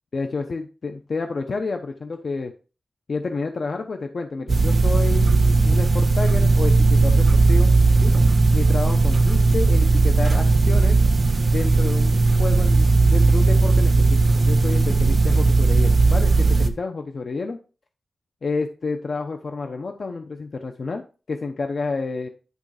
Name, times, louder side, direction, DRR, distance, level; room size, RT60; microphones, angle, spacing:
voice 1, 0.1-2.5 3.1-7.7 8.0-8.1 8.5-11.0 11.5-17.6 18.4-22.3, left 4 dB, 65° left, 5 dB, 0.9 m, -30 dB
sound 1, 4.5-16.7, right 3 dB, 60° right, 1.4 m, -17 dB
11.0 x 3.8 x 4.9 m, 0.34 s
wide cardioid pair, 95°, 0 cm